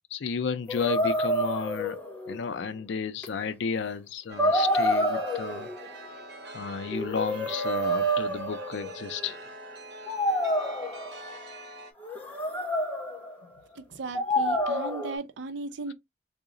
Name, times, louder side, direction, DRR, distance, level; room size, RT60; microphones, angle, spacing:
voice 1, 0.1-2.0 2.3-5.7 6.5-9.4, left 5 dB, 85° left, 0.4 m, -32 dB
sound 1, 0.7-2.4 3.2-3.3 4.4-5.9 6.9-9.1 10.1-11.3 12.0-13.3 14.1-15.1, equal, 10° left, 0.8 m, -28 dB
Chime, 4.3-11.9, right 3 dB, 65° right, 1.0 m, -44 dB
voice 2, 13.8-15.9, right 3 dB, 90° right, 0.5 m, -36 dB
3.8 x 2.0 x 3.6 m
head